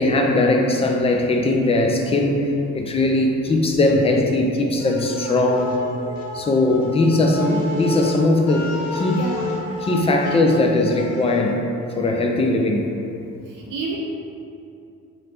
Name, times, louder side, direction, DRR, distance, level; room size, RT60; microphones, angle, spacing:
voice 1, 0.0-2.5 2.7-5.8 6.3-9.3 9.8-11.6 12.0-12.9, left 2 dB, 15° left, 1 dB, 0.4 m, -19 dB
sound 1, 4.8-11.5, left 2 dB, 65° left, 0.7 m, -32 dB
voice 2, 9.1-9.5 10.3-10.4 13.5-14.0, right 4 dB, 45° right, -3 dB, 0.7 m, -30 dB
3.0 x 2.5 x 4.2 m, 2.7 s
figure-of-eight pair, 40°, 44 cm